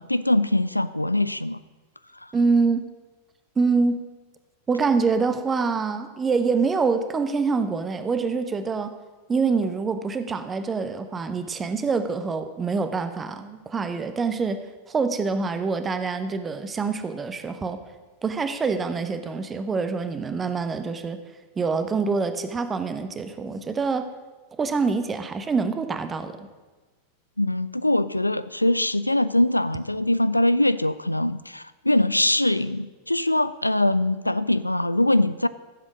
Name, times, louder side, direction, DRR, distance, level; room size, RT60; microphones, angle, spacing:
voice 1, 0.0-1.6 2.2-2.3 27.4-35.5, left 1 dB, 85° left, 15 dB, 0.4 m, -22 dB
voice 2, 2.3-2.9 3.6-4.1 4.7-9.0 9.3-14.6 14.9-17.8 18.2-21.2 21.6-24.1 24.5-26.5, right 4 dB, 20° right, 10 dB, 1.0 m, -25 dB
14.5 x 7.5 x 6.2 m, 1.3 s
figure-of-eight pair, 90°, 0 cm